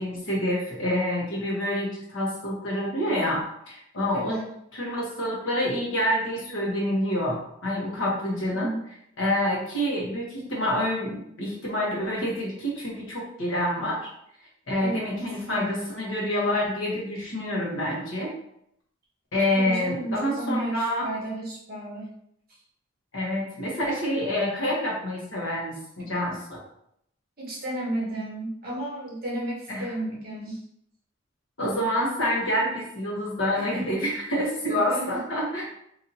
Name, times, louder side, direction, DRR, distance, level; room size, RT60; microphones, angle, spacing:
voice 1, 0.0-4.4 4.7-8.7 9.2-14.1 14.7-18.3 19.3-21.1 23.1-26.6 29.7-29.9 31.6-35.6, left 1 dB, 70° left, -3 dB, 1.2 m, -27 dB
voice 2, 4.1-4.5 8.5-8.8 14.8-15.8 19.5-22.1 26.0-26.1 27.4-30.6 33.5-34.0 34.7-35.2, right 1 dB, 45° right, -6 dB, 1.3 m, -33 dB
4.0 x 2.7 x 2.7 m, 0.74 s
head